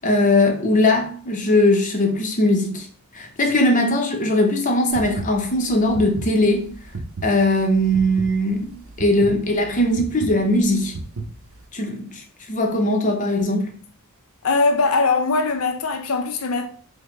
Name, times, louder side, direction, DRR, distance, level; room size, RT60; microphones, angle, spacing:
voice 1, 0.0-2.9 3.1-6.7 7.2-11.0 11.7-12.2 12.5-13.7, left 1 dB, 35° left, 0.7 m, -20 dB
sound 1, 4.9-11.7, right 2 dB, 75° right, 0.6 m, -34 dB
voice 2, 14.4-16.7, left 3 dB, 80° left, 0.6 m, -21 dB
4.8 x 2.2 x 3.2 m
head